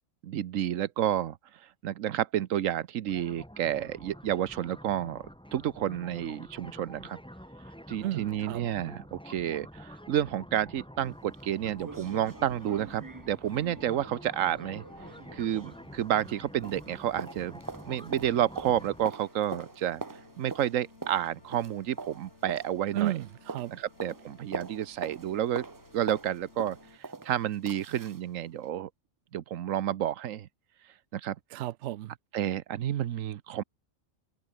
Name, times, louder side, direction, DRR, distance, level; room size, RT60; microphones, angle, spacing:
voice 1, 0.2-1.4 1.8-5.3 5.5-7.2 7.9-14.8 15.3-17.6 17.9-20.0 20.4-23.1 23.7-25.6 25.9-28.9 29.3-30.5 31.1-31.4 32.3-33.6, right 11 dB, 90° right, 1.2 m, -30 dB
sound 1, 3.1-19.1, equal, 5° left, 5.3 m, -48 dB
voice 2, 8.0-8.6 22.9-23.7 31.5-32.1, right 13 dB, 70° right, 0.8 m, -32 dB
sound 2, 11.0-11.1 11.4-11.5 11.8-16.4 16.6-28.2 28.6-28.7, right 4 dB, 25° right, 0.5 m, -43 dB
sound 3, 11.5-27.0, left 3 dB, 60° left, 3.1 m, -57 dB
open air
omnidirectional pair, 1.3 m